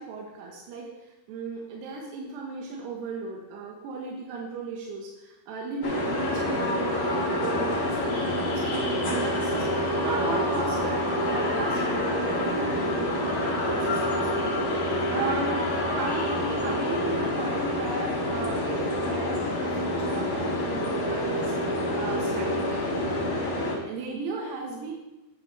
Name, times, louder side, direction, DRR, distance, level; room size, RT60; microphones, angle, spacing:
voice 1, 0.0-14.3 14.7-15.6 15.9-22.8 23.8-24.9, right 4 dB, 90° right, -1 dB, 3.1 m, -36 dB
sound 1, 5.8-23.7, left 1 dB, 55° left, 1.4 m, -27 dB
9.7 x 8.0 x 3.0 m, 1.0 s
omnidirectional pair, 4.7 m